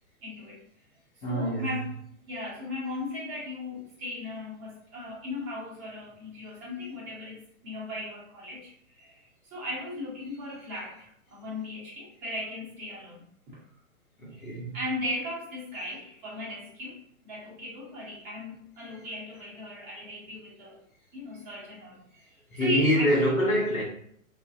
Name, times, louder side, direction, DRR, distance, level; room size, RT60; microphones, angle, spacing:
voice 1, 0.2-0.6 1.3-1.9 2.2-13.6 14.3-14.4 14.7-20.8 21.1-22.0 22.3-23.2, left 1 dB, 10° right, 0.4 m, -37 dB
voice 2, 1.2-1.7 14.2-14.8 22.5-23.8, equal, 80° left, 1.0 m, -25 dB
2.5 x 2.3 x 2.4 m
figure-of-eight pair, 115°, 42 cm